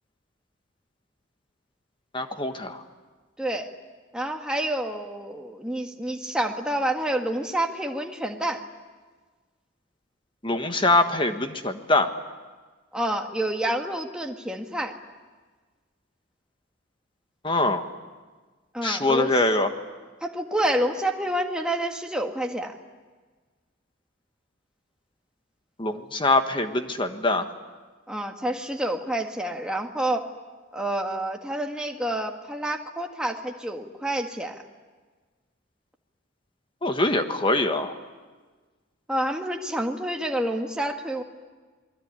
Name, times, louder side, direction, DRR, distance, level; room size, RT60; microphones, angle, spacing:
voice 1, 2.1-2.8 10.4-12.1 17.4-17.9 18.8-19.7 25.8-27.5 36.8-37.9, left 2 dB, 25° left, 7 dB, 1.5 m, -23 dB
voice 2, 3.4-3.7 4.1-8.6 12.9-14.9 18.7-19.4 20.2-22.7 28.1-30.3 30.7-34.6 39.1-41.2, right 1 dB, 5° right, 2 dB, 1.8 m, -28 dB
28.0 x 21.5 x 9.8 m, 1.4 s
head